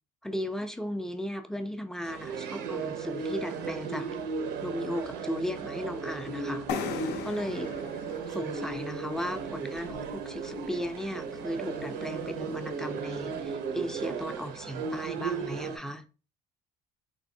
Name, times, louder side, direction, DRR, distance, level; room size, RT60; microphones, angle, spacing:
voice 1, 0.2-4.1 4.6-6.7 7.1-7.7 8.3-16.0, equal, 5° left, 0.3 m, -36 dB
sound 1, 2.0-15.8, right 5 dB, 85° right, 0.6 m, -36 dB
sound 2, 6.7-10.3, left 7 dB, 80° left, 0.5 m, -38 dB
3.3 x 2.6 x 2.7 m
cardioid pair, 110°, 17 cm